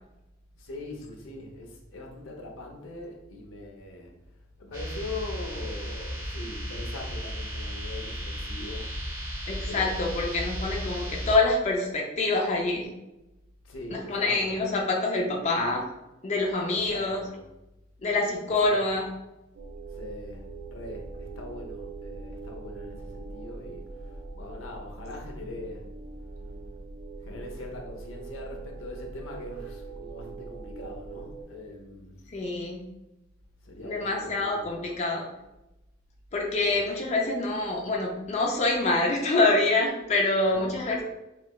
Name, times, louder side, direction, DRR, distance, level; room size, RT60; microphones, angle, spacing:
voice 1, 0.6-4.1 4.6-8.9 9.6-10.3 13.6-14.6 16.9-17.4 18.6-19.0 19.9-25.9 27.2-32.2 33.6-34.9 36.7-36.9 40.5-40.8, left 2 dB, 80° left, 1 dB, 0.6 m, -41 dB
sound 1, 4.7-11.4, equal, 20° right, 0.9 m, -35 dB
voice 2, 9.5-12.9 13.9-15.8 16.2-17.2 18.0-19.0 32.3-32.8 33.8-35.3 36.3-41.0, left 2 dB, 35° left, 0 dB, 0.4 m, -26 dB
sound 2, 19.5-31.4, right 3 dB, 55° right, 0.5 m, -42 dB
3.2 x 3.0 x 2.2 m, 0.93 s
head